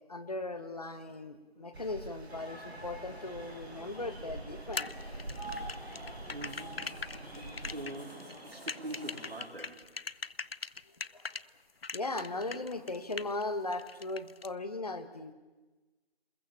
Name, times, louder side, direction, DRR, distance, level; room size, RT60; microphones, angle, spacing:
voice 1, 0.1-4.9 11.1-11.3 11.9-15.3, left 2 dB, 40° left, 9 dB, 1.6 m, -38 dB
sound 1, 1.7-7.8, right 2 dB, 80° right, 1.7 m, -46 dB
sound 2, 2.3-9.4, right 1 dB, 5° right, 1.9 m, -47 dB
sound 3, 4.7-11.4 11.8-13.4 13.7-14.5, left 4 dB, 70° left, 0.7 m, -40 dB
voice 2, 6.3-6.8 7.6-9.9, right 2 dB, 65° right, -4 dB, 4.5 m, -43 dB
25.5 x 21.5 x 7.3 m, 1.2 s
figure-of-eight pair, 165°, 31 cm